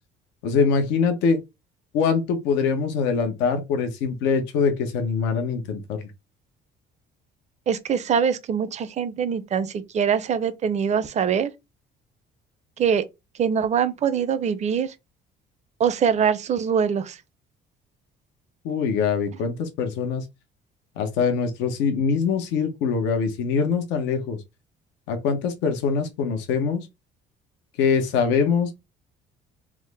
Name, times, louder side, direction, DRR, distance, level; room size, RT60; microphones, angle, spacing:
voice 1, 0.4-1.4 1.9-6.1 18.6-20.2 21.0-24.4 25.1-26.9 27.8-28.7, left 5 dB, 85° left, 0.9 m, -23 dB
voice 2, 7.7-11.5 12.8-13.0 13.4-14.9 15.8-17.2, right 7 dB, 40° right, 0.6 m, -23 dB
3.5 x 2.1 x 3.3 m
cardioid pair, 100°, 18 cm